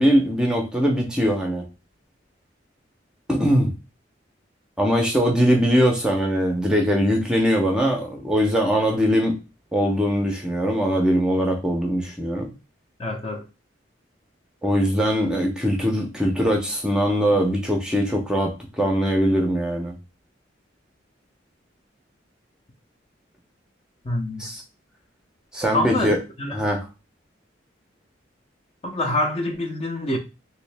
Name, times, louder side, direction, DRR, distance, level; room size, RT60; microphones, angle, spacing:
voice 1, 0.0-1.6 3.3-3.7 4.8-9.4 9.7-12.5 14.6-19.9 24.4-24.6 25.5-26.2 26.5-26.8, equal, 5° right, 0.6 m, -21 dB
voice 2, 13.0-13.4 24.0-24.5 25.7-26.6 28.8-30.2, left 1 dB, 30° left, 0.6 m, -26 dB
3.2 x 2.7 x 3.3 m
head